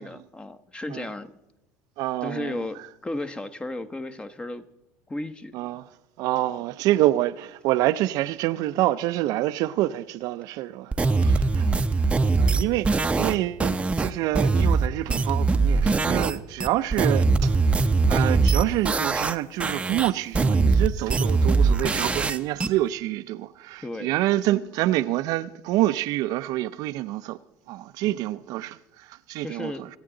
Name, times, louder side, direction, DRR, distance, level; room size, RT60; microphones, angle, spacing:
voice 1, 0.0-1.3 2.2-4.6 5.1-5.5 11.5-11.9 23.8-24.2 28.1-28.2 29.4-29.8, left 2 dB, 15° left, 0.8 m, -34 dB
voice 2, 2.0-2.6 5.5-5.9 6.2-11.7 12.3-17.6 18.1-27.4 27.7-29.9, right 15 dB, 65° right, 0.5 m, -27 dB
sound 1, 10.9-16.3 16.6-19.3 19.6-22.7, right 3 dB, 15° right, 0.6 m, -22 dB
25.5 x 8.9 x 3.8 m
supercardioid pair, 105°, 7 cm